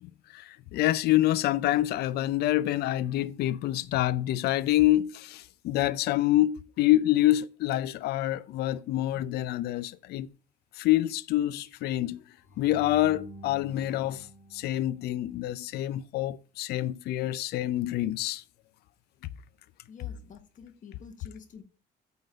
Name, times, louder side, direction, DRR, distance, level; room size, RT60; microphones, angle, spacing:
voice 1, 0.0-10.3 10.8-12.2 12.6-18.4, left 14 dB, 70° left, 0.5 m, -27 dB
sound 1, 12.4-15.6, right 1 dB, 10° left, 1.7 m, -49 dB
voice 2, 19.9-21.6, left 6 dB, 50° left, 1.5 m, -48 dB
9.1 x 3.9 x 6.6 m
cardioid pair, 110°, 17 cm